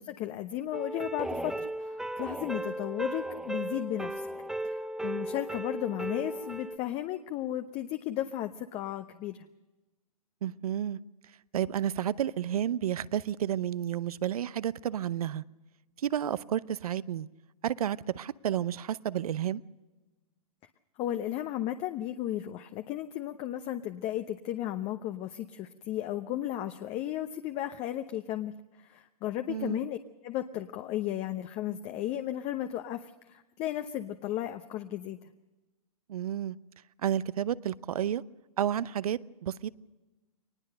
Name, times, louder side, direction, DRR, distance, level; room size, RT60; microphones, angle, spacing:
voice 1, 0.0-4.3 4.6-9.4 21.0-30.0 30.2-35.2, left 12 dB, 30° left, 0.9 m, -34 dB
sound 1, 0.7-6.8, right 1 dB, 5° right, 0.8 m, -36 dB
voice 2, 10.4-11.0 11.5-15.4 16.0-17.3 17.6-19.6 29.5-29.8 36.1-36.6 37.0-38.2 38.6-39.7, right 10 dB, 70° right, 0.8 m, -31 dB
23.0 x 20.0 x 6.6 m
hypercardioid pair, 125°, 19 cm